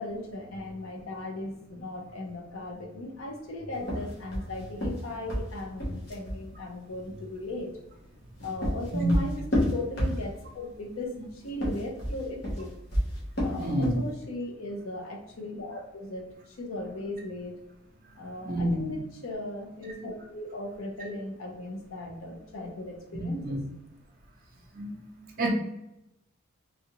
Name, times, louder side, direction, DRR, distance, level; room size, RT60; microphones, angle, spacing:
voice 1, 0.0-7.8 8.4-12.8 13.4-17.6 18.2-23.6, left 1 dB, 75° left, 2 dB, 0.7 m, -37 dB
sound 1, 3.8-6.4 8.1-10.6 11.5-14.1, equal, 55° left, 1.0 m, -30 dB
voice 2, 13.6-14.0 18.4-19.0 23.1-23.6 24.7-25.5, right 1 dB, 40° right, 1 dB, 0.6 m, -30 dB
3.3 x 2.4 x 3.0 m, 0.89 s
head